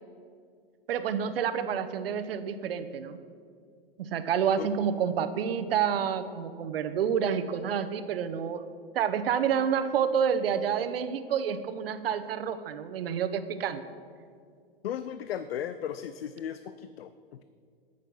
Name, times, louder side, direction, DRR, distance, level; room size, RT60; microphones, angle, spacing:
voice 1, 0.9-3.2 4.0-8.6 8.9-13.8, right 8 dB, 75° right, 10 dB, 0.9 m, -29 dB
voice 2, 14.8-17.4, left 9 dB, 80° left, 12 dB, 0.6 m, -36 dB
15.5 x 6.6 x 5.5 m, 2.2 s
hypercardioid pair, 125°, 29 cm